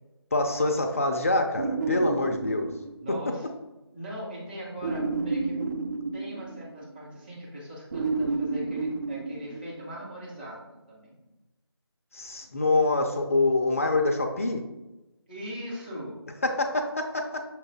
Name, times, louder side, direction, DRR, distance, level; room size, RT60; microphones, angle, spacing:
voice 1, 0.3-2.7 3.1-3.2 12.1-14.6 16.4-17.4, left 2 dB, 30° left, 4 dB, 0.4 m, -25 dB
sound 1, 1.6-3.3 4.8-6.9 7.9-10.1, right 3 dB, 40° right, 0.4 m, -31 dB
voice 2, 3.0-3.5 3.9-5.6 6.1-11.2 15.3-16.2, equal, 20° right, -6 dB, 1.1 m, -40 dB
5.8 x 2.5 x 3.4 m, 1.0 s
figure-of-eight pair, 160°, 14 cm